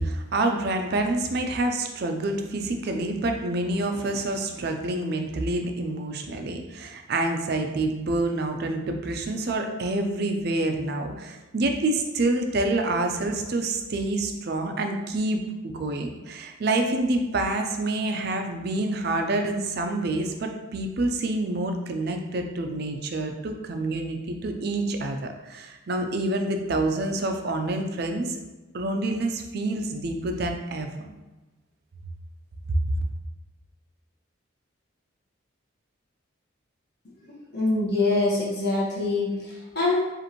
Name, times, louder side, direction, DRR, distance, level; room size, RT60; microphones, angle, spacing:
voice 1, 0.0-28.4 28.7-31.1 32.7-32.8, right 2 dB, 50° right, 5 dB, 0.4 m, -27 dB
voice 2, 37.5-40.0, left 2 dB, 50° left, -7 dB, 1.3 m, -24 dB
5.0 x 2.5 x 3.0 m, 1.1 s
head